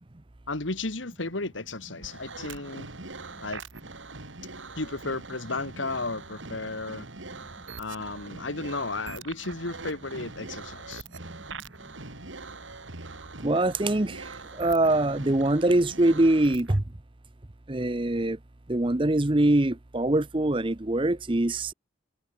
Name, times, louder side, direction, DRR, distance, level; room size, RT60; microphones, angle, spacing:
voice 1, 0.5-2.9 3.4-3.6 4.8-7.1 7.8-11.0, left 3 dB, 70° left, 2.2 m, -34 dB
sound 1, 2.0-16.8, right 3 dB, 75° right, 3.1 m, -42 dB
voice 2, 13.4-16.8 17.7-18.4 18.7-21.7, right 1 dB, 25° right, 0.8 m, -23 dB
head